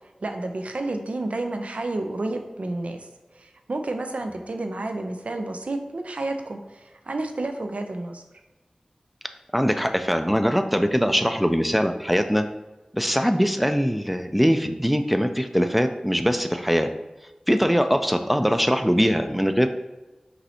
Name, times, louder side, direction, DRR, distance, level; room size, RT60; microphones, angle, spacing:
voice 1, 0.2-3.1 3.3-8.2, right 2 dB, 75° right, 5 dB, 0.4 m, -30 dB
voice 2, 9.5-12.4 12.9-16.9 17.5-19.7, equal, 5° right, 7 dB, 0.3 m, -22 dB
5.2 x 3.2 x 2.8 m, 1.1 s
wide cardioid pair, 50°, 2 cm